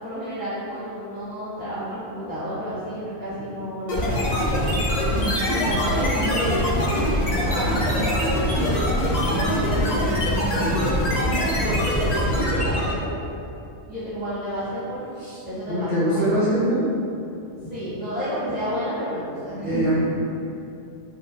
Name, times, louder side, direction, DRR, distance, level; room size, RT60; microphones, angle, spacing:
voice 1, 0.0-4.8 5.5-10.0 10.6-13.1 13.9-15.0 15.4-16.5 17.5-20.0, equal, 10° right, -15 dB, 0.7 m, -31 dB
sound 1, 3.9-13.1, equal, 50° left, 0.5 m, -23 dB
voice 2, 15.7-16.9 19.6-20.0, equal, 60° right, -13 dB, 1.2 m, -23 dB
4.6 x 2.1 x 2.6 m, 2.6 s
omnidirectional pair, 1.2 m